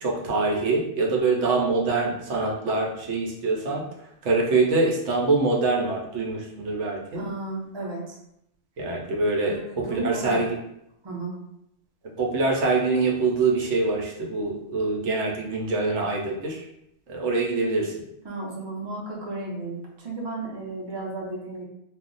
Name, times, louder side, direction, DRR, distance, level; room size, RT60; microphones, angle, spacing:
voice 1, 0.0-7.2 8.8-10.6 12.2-16.6 17.1-17.9, right 3 dB, 70° right, -1 dB, 0.9 m, -24 dB
voice 2, 7.1-8.2 9.5-10.5 11.0-11.4 18.2-21.6, right 2 dB, 30° right, -4 dB, 0.5 m, -34 dB
2.3 x 2.0 x 3.8 m, 0.79 s
omnidirectional pair, 1.3 m